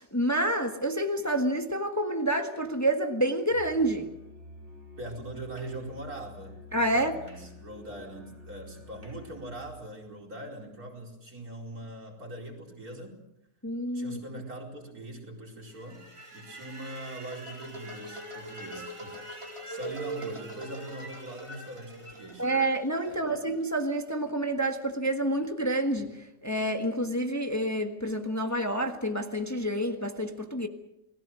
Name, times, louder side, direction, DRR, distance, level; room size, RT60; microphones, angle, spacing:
voice 1, 0.0-4.1 6.7-7.1 13.6-14.2 22.4-30.7, right 1 dB, 10° left, 1.4 m, -28 dB
Musical instrument, 3.5-9.8, left 2 dB, 50° right, 5.3 m, -49 dB
voice 2, 5.0-6.6 6.9-13.2 13.9-16.0 16.3-22.5 23.0-23.4, right 1 dB, 75° right, 5.1 m, -42 dB
sound 1, 15.7-23.8, right 2 dB, 20° right, 4.6 m, -42 dB
29.5 x 20.0 x 6.3 m
omnidirectional pair, 1.6 m